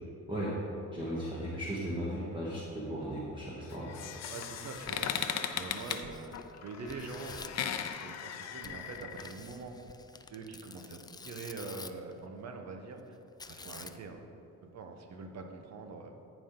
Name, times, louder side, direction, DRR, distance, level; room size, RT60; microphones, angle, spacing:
voice 1, 0.3-0.6 0.9-3.9, equal, 15° right, -8 dB, 1.7 m, -36 dB
sound 1, 3.7-9.3, left 8 dB, 60° left, 0.6 m, -38 dB
voice 2, 4.3-5.1 5.5-6.4 6.6-7.5 8.0-9.8 10.3-13.2 13.5-14.2 14.6-16.2, right 4 dB, 60° right, 4 dB, 1.1 m, -44 dB
Tearing, 4.6-6.6 6.9-7.6 8.6-12.1 13.4-14.2, left 4 dB, 15° left, 0.4 m, -49 dB
14.5 x 5.1 x 3.8 m, 2.8 s
cardioid pair, 90°, 30 cm